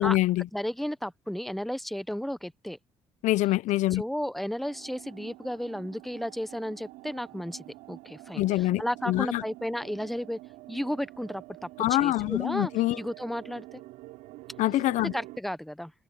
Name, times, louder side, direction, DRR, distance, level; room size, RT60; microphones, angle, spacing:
voice 1, 0.0-0.5 3.2-4.0 8.4-9.4 11.8-13.0 14.6-15.1, left 16 dB, 75° left, 0.9 m, -25 dB
voice 2, 0.5-2.8 3.9-10.4 10.7-12.7 13.0-13.8 15.0-15.9, equal, ahead, 1.1 m, -33 dB
sound 1, 4.6-15.4, right 20 dB, 85° right, 6.1 m, -47 dB
supercardioid pair, 60°, 13 cm